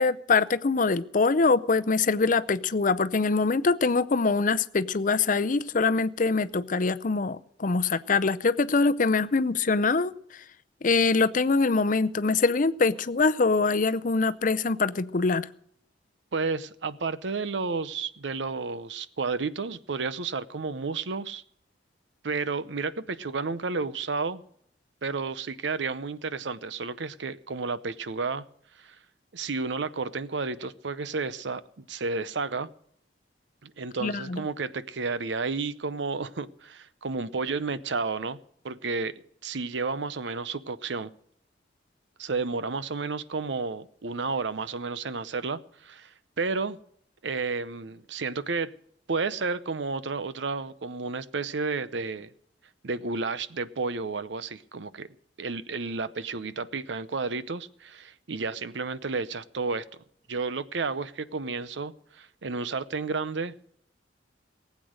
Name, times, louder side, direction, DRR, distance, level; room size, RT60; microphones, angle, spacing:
voice 1, 0.0-10.1 10.8-15.5 34.0-34.5, left 4 dB, 45° left, 0.6 m, -24 dB
voice 2, 16.3-21.4 22.2-24.4 25.0-28.4 28.8-29.0 29.3-32.7 33.6-38.4 38.6-41.1 42.2-46.8 47.2-48.7 49.1-52.3 52.8-55.1 55.4-59.8 60.3-63.5, right 4 dB, 85° right, 0.7 m, -31 dB
19.0 x 8.4 x 6.4 m
head